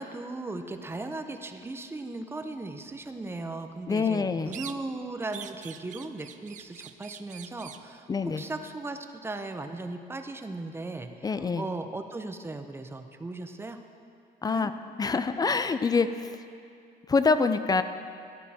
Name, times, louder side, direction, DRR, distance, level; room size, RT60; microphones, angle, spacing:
voice 1, 0.0-13.8 14.5-14.7, right 2 dB, 15° right, 7 dB, 0.8 m, -37 dB
voice 2, 3.9-4.6 8.1-8.4 11.2-11.7 14.4-14.7 15.0-16.1 17.1-17.8, left 4 dB, 20° left, 10 dB, 0.5 m, -25 dB
sound 1, 4.5-5.0 5.3-7.9, right 9 dB, 50° right, 0.5 m, -44 dB
14.5 x 11.0 x 4.3 m, 2.4 s
cardioid pair, 110°, 17 cm